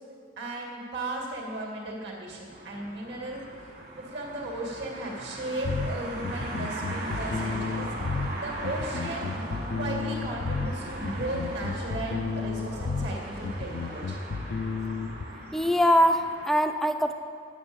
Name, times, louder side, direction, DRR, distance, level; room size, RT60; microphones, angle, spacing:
voice 1, 0.4-3.4 4.0-7.9 8.4-9.3 9.8-14.2, right 1 dB, 65° right, -1 dB, 2.3 m, -36 dB
sound 1, 2.5-16.5, right 1 dB, 45° right, 1.8 m, -39 dB
sound 2, 5.6-15.2, left 4 dB, 75° left, 0.5 m, -32 dB
voice 2, 15.5-17.1, equal, ahead, 7 dB, 0.4 m, -22 dB
10.0 x 7.1 x 7.2 m, 2.3 s
head